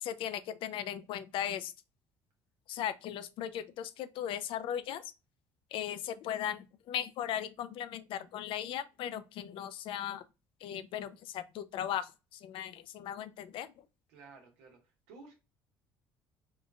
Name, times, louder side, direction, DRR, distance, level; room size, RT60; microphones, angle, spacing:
voice 1, 0.0-1.7 2.7-5.1 5.7-10.2 10.6-13.7, left 10 dB, 65° left, 0.4 m, -37 dB
voice 2, 14.1-14.8 15.1-15.3, right 4 dB, 85° right, 1.1 m, -53 dB
3.6 x 2.5 x 2.2 m
supercardioid pair, 80°, 10 cm